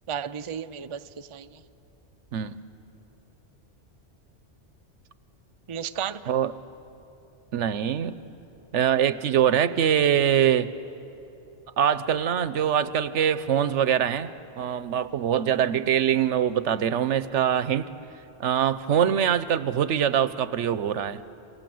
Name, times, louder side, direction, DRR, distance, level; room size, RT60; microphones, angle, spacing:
voice 1, 0.1-1.6 5.7-6.2, right 8 dB, 35° right, 11 dB, 0.5 m, -33 dB
voice 2, 7.5-8.2 8.7-10.7 11.8-17.9 18.4-21.2, right 9 dB, 80° right, 14 dB, 1.1 m, -23 dB
27.5 x 26.5 x 7.8 m, 3.0 s
omnidirectional pair, 1.2 m